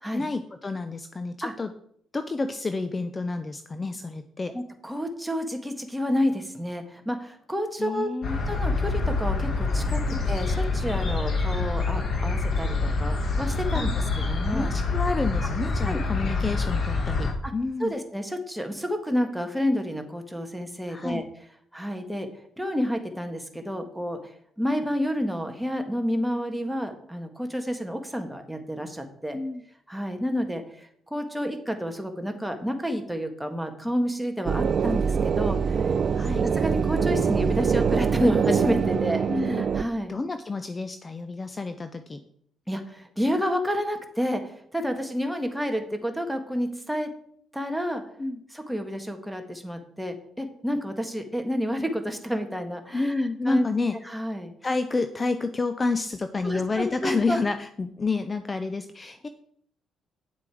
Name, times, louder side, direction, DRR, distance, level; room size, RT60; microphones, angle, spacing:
voice 1, 0.1-1.7 2.1-4.5 7.8-8.4 10.1-10.2 13.7-13.9 14.5-17.9 20.9-21.2 29.3-29.6 36.1-36.4 39.3-39.6 40.1-42.2 48.2-48.4 52.9-54.0 54.6-59.3, left 3 dB, 30° left, 9 dB, 0.7 m, -29 dB
voice 2, 4.5-8.1 8.5-13.9 14.3-14.7 15.8-16.0 17.4-17.5 17.8-21.2 21.7-22.3 22.6-24.3 24.6-29.4 29.9-35.8 36.4-40.1 42.7-47.1 47.5-48.0 48.5-53.6 54.0-54.5 56.4-57.4, equal, 5° right, 4 dB, 1.7 m, -29 dB
sound 1, 8.2-17.3, left 3 dB, 55° left, 2.0 m, -26 dB
sound 2, 34.5-39.8, right 6 dB, 50° right, 0.6 m, -24 dB
9.4 x 7.7 x 4.9 m, 0.66 s
cardioid pair, 90°, 0 cm